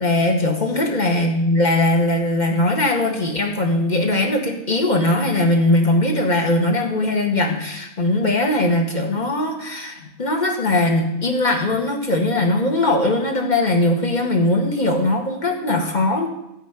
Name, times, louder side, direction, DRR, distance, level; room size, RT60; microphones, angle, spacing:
voice 1, 0.0-16.3, left 1 dB, 30° left, 2 dB, 1.8 m, -20 dB
12.0 x 5.7 x 9.0 m, 0.87 s
omnidirectional pair, 1.5 m